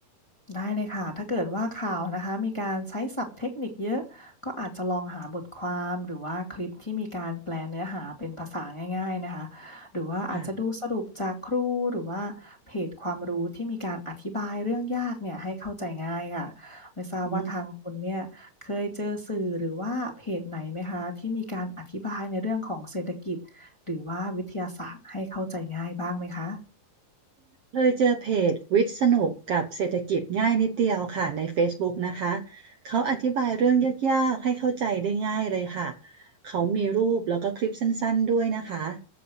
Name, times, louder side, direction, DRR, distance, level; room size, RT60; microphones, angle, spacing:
voice 1, 0.5-26.6, left 1 dB, 10° left, 0 dB, 1.7 m, -32 dB
voice 2, 27.7-39.0, right 6 dB, 85° right, 4 dB, 1.3 m, -25 dB
15.0 x 6.2 x 8.0 m, 0.36 s
omnidirectional pair, 4.6 m